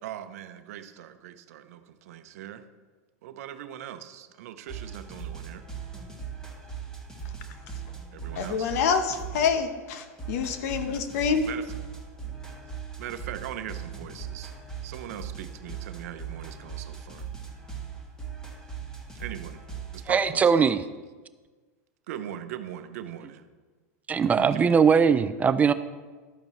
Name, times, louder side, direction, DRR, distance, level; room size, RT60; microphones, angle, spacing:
voice 1, 0.0-2.6 3.2-5.6 8.1-8.8 11.5-11.8 13.0-14.5 14.8-17.3 19.1-19.6 19.9-20.6 22.1-23.4 24.2-24.7, right 11 dB, 70° right, 10 dB, 0.8 m, -40 dB
sound 1, 4.7-9.7 10.2-20.0, right 6 dB, 5° left, 1.8 m, -39 dB
voice 2, 8.4-11.5, left 6 dB, 70° left, 9 dB, 1.0 m, -26 dB
voice 3, 20.1-20.8 24.1-25.7, right 6 dB, 20° right, 12 dB, 0.3 m, -20 dB
12.0 x 8.6 x 3.1 m, 1.4 s
hypercardioid pair, 125°, 8 cm